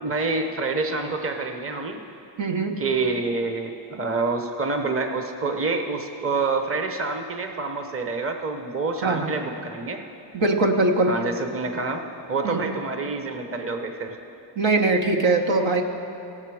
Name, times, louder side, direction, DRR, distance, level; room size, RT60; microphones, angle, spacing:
voice 1, 0.0-2.0 2.8-10.0 11.1-12.0 12.3-14.2, right 3 dB, 30° right, 5 dB, 0.9 m, -27 dB
voice 2, 2.4-2.8 9.0-9.3 10.3-11.1 12.4-12.7 14.6-15.8, right 3 dB, 70° right, 3 dB, 1.2 m, -21 dB
17.5 x 7.4 x 4.8 m, 2.8 s
cardioid pair, 75°, 47 cm